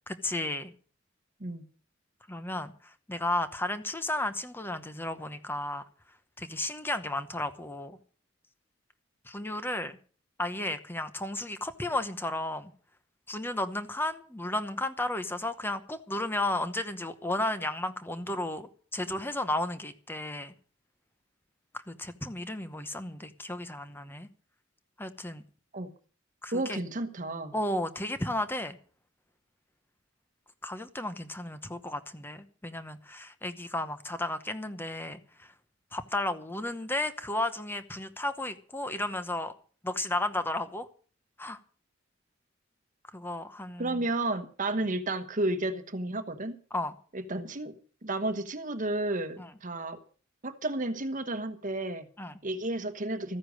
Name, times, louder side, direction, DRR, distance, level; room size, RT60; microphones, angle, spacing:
voice 1, 0.1-0.7 2.3-5.8 6.4-8.0 9.3-10.0 10.4-12.7 13.3-20.5 21.7-24.3 25.0-25.4 26.4-26.8 27.5-28.8 30.6-35.5 35.9-39.5 39.8-40.9 41.4-41.6 43.1-44.0 46.7-47.0 49.4-49.5 52.2-52.3, left 1 dB, 10° left, 10 dB, 0.9 m, -33 dB
voice 2, 26.5-27.5 43.8-46.6 47.1-47.7 48.0-50.0 50.4-52.0 52.4-53.4, right 2 dB, 40° right, 10 dB, 1.2 m, -32 dB
14.0 x 10.0 x 6.4 m, 0.41 s
head